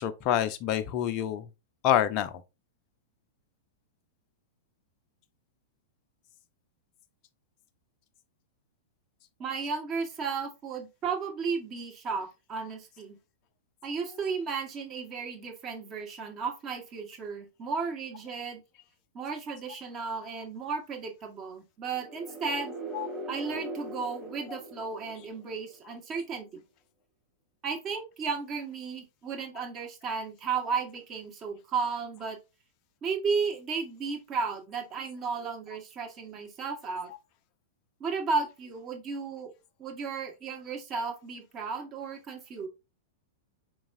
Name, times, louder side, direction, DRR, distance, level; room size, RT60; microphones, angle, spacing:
voice 1, 0.0-1.5 1.8-2.3 22.9-23.1, left 10 dB, 40° left, 0.5 m, -27 dB
voice 2, 9.4-13.2 13.8-18.6 19.1-22.7 23.3-26.6 27.6-32.4 33.0-37.1 38.0-39.5 39.8-42.7, right 5 dB, 30° right, 1.3 m, -34 dB
sound 1, 21.9-25.7, right 1 dB, 15° right, 1.7 m, -40 dB
4.5 x 4.0 x 2.5 m
figure-of-eight pair, 100°, 0 cm